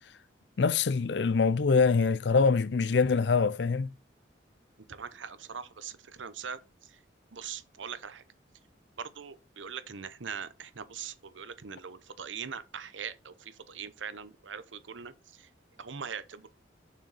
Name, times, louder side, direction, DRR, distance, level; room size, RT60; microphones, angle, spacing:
voice 1, 0.6-3.9, left 4 dB, 70° left, 0.5 m, -24 dB
voice 2, 4.9-7.0 7.3-8.2 9.0-15.5 15.8-16.5, right 7 dB, 85° right, 0.8 m, -41 dB
6.4 x 6.3 x 4.1 m
head